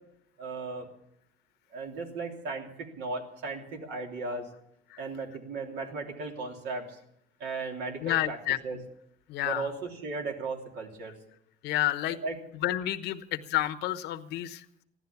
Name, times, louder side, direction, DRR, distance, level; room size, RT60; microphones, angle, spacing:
voice 1, 0.4-0.9 1.7-4.5 5.0-7.0 7.4-8.4 8.6-8.8 9.4-11.1 12.1-12.4, right 3 dB, 85° right, 2 dB, 3.2 m, -36 dB
voice 2, 8.0-8.8 9.3-9.7 11.6-12.2 12.6-14.6, left 14 dB, 85° left, 10 dB, 1.0 m, -30 dB
15.5 x 12.0 x 7.0 m, 0.76 s
cardioid pair, 110°, 17 cm